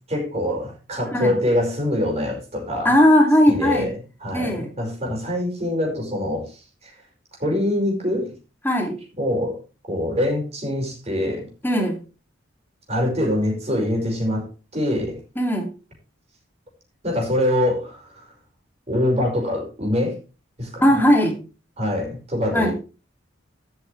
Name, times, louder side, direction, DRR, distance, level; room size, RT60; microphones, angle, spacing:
voice 1, 0.1-2.9 3.5-6.9 7.4-8.3 9.2-9.6 9.9-11.5 12.9-14.5 14.7-15.2 17.0-18.3 18.9-20.2 20.6-20.8 21.8-22.7, left 1 dB, 35° right, 0 dB, 5.4 m, -24 dB
voice 2, 2.8-3.9 4.3-4.7 8.6-9.0 11.6-12.0 15.4-15.7 20.8-21.4 22.5-22.7, equal, 10° left, 3 dB, 2.6 m, -18 dB
12.5 x 8.4 x 3.3 m, 0.33 s
head